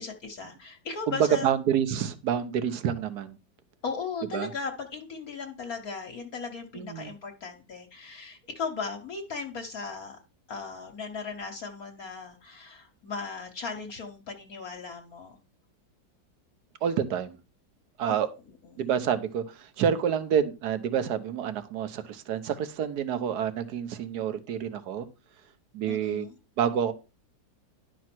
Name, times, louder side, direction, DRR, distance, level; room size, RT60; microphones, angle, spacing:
voice 1, 0.0-1.5 3.8-10.2 10.5-15.4 18.1-18.3 18.7-18.8 25.9-26.4, left 4 dB, 55° left, 3 dB, 1.3 m, -37 dB
voice 2, 1.1-3.4 4.3-4.5 6.7-7.1 16.8-17.4 18.0-18.3 18.8-25.1 25.7-26.3 26.6-26.9, right 8 dB, 65° right, 11 dB, 1.4 m, -28 dB
10.5 x 4.6 x 6.0 m, 0.30 s
omnidirectional pair, 2.0 m